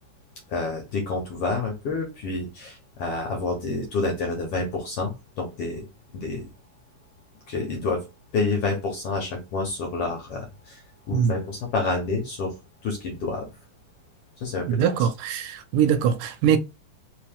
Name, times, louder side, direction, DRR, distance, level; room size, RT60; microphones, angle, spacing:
voice 1, 0.5-5.9 6.1-6.5 7.5-8.0 8.3-10.8 11.1-12.5 12.8-13.5 14.4-14.8, left 3 dB, 60° left, 1.6 m, -28 dB
voice 2, 14.7-16.6, right 8 dB, 80° right, 2.1 m, -22 dB
4.9 x 3.1 x 3.5 m
omnidirectional pair, 3.9 m